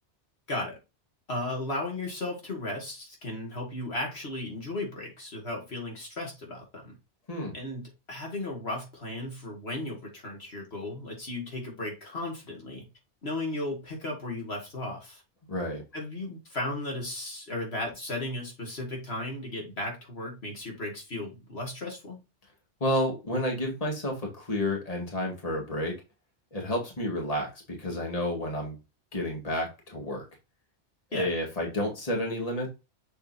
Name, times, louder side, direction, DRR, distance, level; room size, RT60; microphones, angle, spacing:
voice 1, 0.5-0.8 1.3-7.0 7.5-12.9 13.2-15.2 15.9-22.2 31.1-31.3, left 1 dB, 60° left, 2.3 m, -35 dB
voice 2, 15.4-15.8 22.8-25.9 26.5-27.5 27.8-28.8 29.1-30.2 31.1-32.7, left 1 dB, 30° left, 2.1 m, -30 dB
7.0 x 5.4 x 2.6 m
omnidirectional pair, 1.2 m